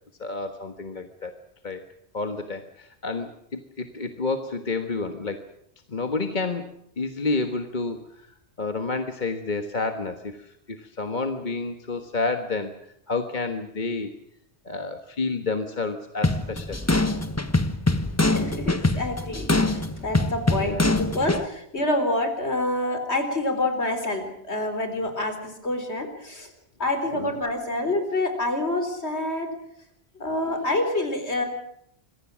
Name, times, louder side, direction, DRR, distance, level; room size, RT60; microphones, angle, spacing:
voice 1, 0.2-1.3 1.6-1.8 2.1-5.4 5.9-8.3 8.6-12.7 13.1-14.1 14.6-16.8 20.5-21.0 27.1-27.4, left 3 dB, 45° left, 7 dB, 1.6 m, -30 dB
sound 1, 16.2-21.4, left 2 dB, 15° left, 1.2 m, -24 dB
voice 2, 18.3-19.5 20.0-26.5 26.8-29.5 30.2-31.5, left 1 dB, 85° left, 7 dB, 4.5 m, -27 dB
26.0 x 22.5 x 6.2 m, 0.73 s
omnidirectional pair, 1.1 m